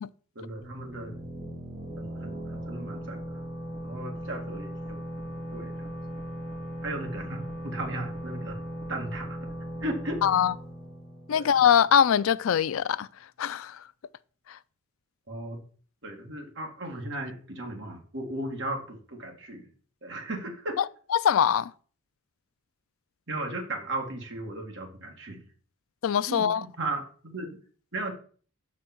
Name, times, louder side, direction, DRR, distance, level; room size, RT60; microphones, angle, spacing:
voice 1, 0.4-1.3 2.0-3.4 3.8-5.0 5.5-5.9 6.8-8.6 8.9-9.4 9.8-10.2 11.3-11.5 15.3-15.6 16.0-19.7 20.0-20.8 23.3-25.4 26.3-27.6 27.9-28.1, right 2 dB, 55° right, 2.0 m, -36 dB
sound 1, 0.6-12.1, equal, 30° right, 2.2 m, -38 dB
voice 2, 10.2-10.5 11.3-13.1 13.4-13.8 14.5-14.6 20.8-20.9 21.1-21.7 26.0-26.6, left 8 dB, 65° left, 0.4 m, -23 dB
6.2 x 5.1 x 5.9 m
head